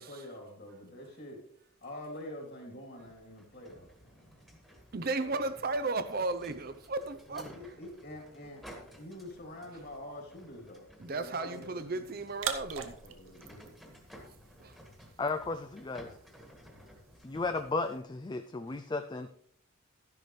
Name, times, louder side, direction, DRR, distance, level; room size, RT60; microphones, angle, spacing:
voice 1, 0.0-1.5 1.8-4.3 5.0-5.5 7.3-8.7 8.9-12.1 12.7-13.8, left 1 dB, 50° left, 2.9 m, -47 dB
sound 1, 3.0-17.8, equal, ahead, 1.6 m, -55 dB
voice 2, 4.9-7.5 11.0-12.9 14.6-14.8, right 3 dB, 45° right, 0.6 m, -34 dB
sound 2, 12.3-18.0, right 7 dB, 70° right, 0.9 m, -44 dB
voice 3, 15.2-16.1 17.2-19.3, left 3 dB, 20° left, 0.3 m, -34 dB
13.0 x 10.5 x 3.2 m
head